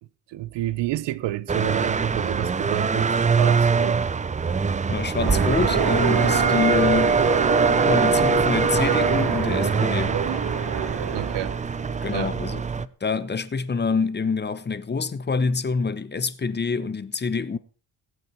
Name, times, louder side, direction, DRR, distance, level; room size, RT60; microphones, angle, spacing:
voice 1, 0.3-4.0 11.1-11.6 12.1-12.3, right 15 dB, 70° right, 1.0 m, -29 dB
sound 1, 1.5-12.9, right 5 dB, 15° right, 0.6 m, -23 dB
voice 2, 4.9-7.2 7.7-10.2 12.0-17.6, left 4 dB, 25° left, 1.0 m, -26 dB
Train, 5.2-12.1, right 7 dB, 50° right, 3.2 m, -28 dB
19.0 x 8.4 x 4.6 m
cardioid pair, 95°, 44 cm